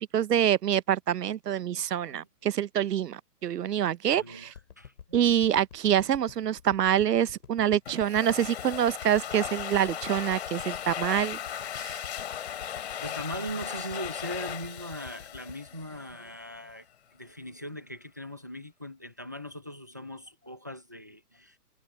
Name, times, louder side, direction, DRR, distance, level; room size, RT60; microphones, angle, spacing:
voice 1, 0.1-4.5 5.1-11.4 11.8-11.9, right 10 dB, 85° right, 0.9 m, -26 dB
voice 2, 3.8-5.2 6.0-6.2 12.5-12.6 13.0-16.9 17.1-21.6, equal, 10° right, 0.6 m, -40 dB
sound 1, 4.5-16.9 17.3-17.4, left 7 dB, 65° left, 2.6 m, -48 dB
Domestic sounds home sounds, 7.9-16.3, left 9 dB, 40° left, 4.3 m, -37 dB
hypercardioid pair, 175°, 47 cm